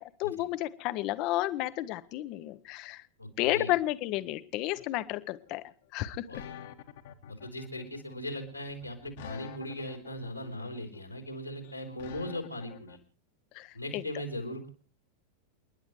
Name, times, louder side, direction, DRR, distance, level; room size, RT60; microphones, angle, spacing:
voice 1, 0.0-3.0 3.4-5.6 5.9-6.4 13.5-14.0, left 16 dB, 40° left, 14 dB, 0.9 m, -32 dB
voice 2, 3.2-3.7 6.3-6.5 7.3-13.0 13.7-14.7, left 1 dB, 90° left, 5 dB, 3.3 m, -39 dB
sound 1, 4.8-13.0, left 9 dB, 55° left, 1.4 m, -47 dB
29.5 x 10.5 x 3.1 m, 0.39 s
figure-of-eight pair, 90°, 0 cm